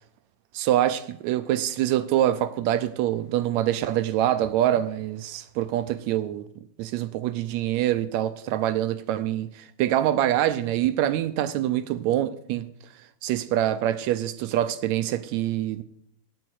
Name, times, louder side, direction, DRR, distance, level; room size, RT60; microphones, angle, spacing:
voice 1, 0.5-6.4 6.8-12.7 13.2-15.8, right 12 dB, 80° right, 1.7 m, -25 dB
9.2 x 8.8 x 8.1 m
omnidirectional pair, 3.6 m